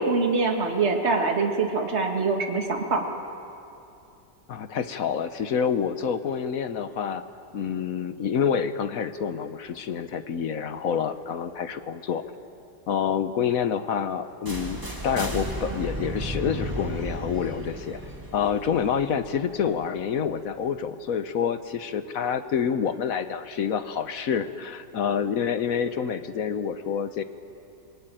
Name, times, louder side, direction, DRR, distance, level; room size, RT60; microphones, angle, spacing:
voice 1, 0.0-3.1, right 4 dB, 40° right, 2 dB, 2.3 m, -24 dB
voice 2, 4.5-7.2 7.5-12.2 12.9-18.0 18.3-27.2, left 7 dB, 60° left, 11 dB, 1.2 m, -27 dB
sound 1, 14.5-20.3, right 1 dB, 10° right, 2.0 m, -34 dB
25.0 x 20.5 x 9.1 m, 2.7 s
omnidirectional pair, 1.8 m